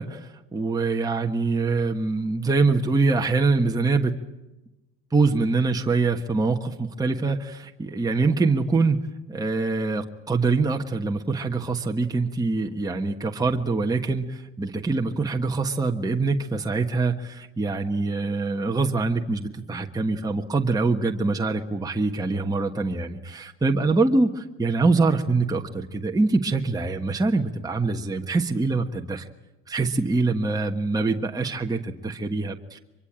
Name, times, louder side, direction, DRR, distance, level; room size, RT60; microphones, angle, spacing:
voice 1, 0.0-4.2 5.1-29.3 29.7-32.8, right 3 dB, 10° right, 2 dB, 1.3 m, -24 dB
24.0 x 23.0 x 8.9 m, 1.0 s
supercardioid pair, 110°, 43 cm